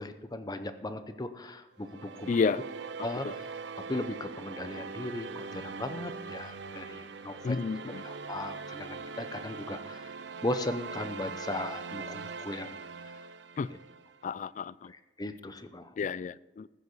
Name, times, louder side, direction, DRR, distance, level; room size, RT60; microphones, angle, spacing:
voice 1, 0.0-2.3 3.0-3.5 3.9-12.7 14.9-15.9, left 1 dB, 25° left, 0.7 m, -37 dB
sound 1, 1.8-14.2, right 5 dB, 90° right, 0.7 m, -42 dB
voice 2, 2.3-2.6 3.2-3.3 7.4-8.1 13.6-13.7 14.2-14.9 16.0-16.7, left 5 dB, 45° left, 0.3 m, -31 dB
14.5 x 6.6 x 7.0 m
head